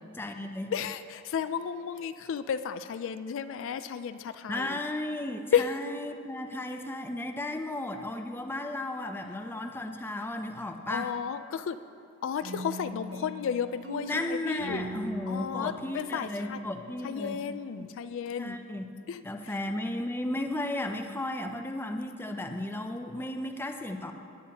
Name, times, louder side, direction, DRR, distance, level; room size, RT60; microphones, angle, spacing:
voice 1, 0.1-0.7 4.5-11.1 14.1-17.4 17.8-17.9 18.4-18.9 19.2-24.1, left 1 dB, 10° left, 5 dB, 0.5 m, -34 dB
voice 2, 0.7-4.8 5.5-5.7 10.9-11.8 12.2-14.8 15.3-16.6 17.0-18.6 19.1-19.2, left 7 dB, 65° left, 11 dB, 0.3 m, -32 dB
sound 1, 12.4-17.3, right 1 dB, 65° right, 1.1 m, -41 dB
18.5 x 8.5 x 2.9 m, 2.5 s
head